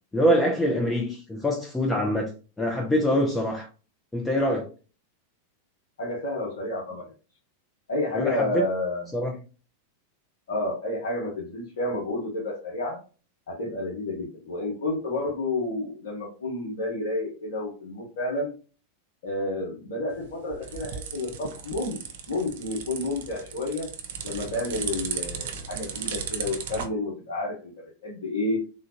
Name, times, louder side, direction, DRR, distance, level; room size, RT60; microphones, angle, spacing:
voice 1, 0.1-2.3 2.6-3.7 4.1-4.7 8.1-8.6 9.1-9.3, equal, 10° left, 0.5 m, -24 dB
voice 2, 6.0-7.1 7.9-9.1 10.5-13.0 13.5-18.5 19.2-22.0 22.3-23.9 24.2-27.7 28.0-28.6, left 2 dB, 60° left, 1.0 m, -30 dB
sound 1, 20.1-26.9, right 7 dB, 55° right, 0.5 m, -36 dB
3.6 x 2.4 x 2.7 m
figure-of-eight pair, 90°, 0 cm